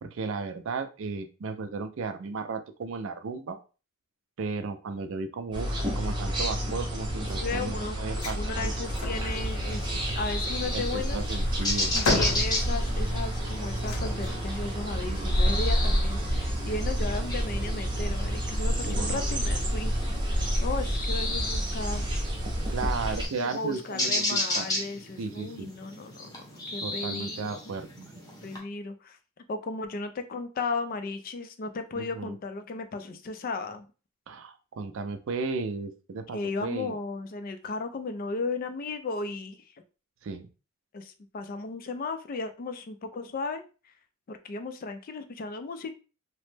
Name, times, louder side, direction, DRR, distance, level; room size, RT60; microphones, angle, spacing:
voice 1, 0.0-3.6 4.4-8.7 10.7-12.2 15.1-15.6 18.9-19.5 22.7-24.7 25.2-25.7 26.8-28.2 32.0-32.3 34.3-36.9 40.2-40.5, right 4 dB, 60° right, 8 dB, 0.4 m, -35 dB
sound 1, 5.5-23.3, equal, 20° right, 0.6 m, -29 dB
voice 2, 7.3-8.0 8.4-11.2 11.9-20.0 20.2-22.1 23.5-26.3 26.7-27.6 28.4-29.2 29.5-33.9 36.3-39.7 40.9-43.9 44.3-45.9, left 3 dB, 40° left, 8 dB, 0.3 m, -35 dB
sound 2, 8.2-8.4 8.8-9.2 10.6-13.1 13.8-14.5, left 2 dB, 80° left, 0.7 m, -32 dB
sound 3, 9.1-28.6, left 2 dB, 20° left, 0.7 m, -35 dB
3.0 x 2.0 x 3.2 m, 0.33 s
head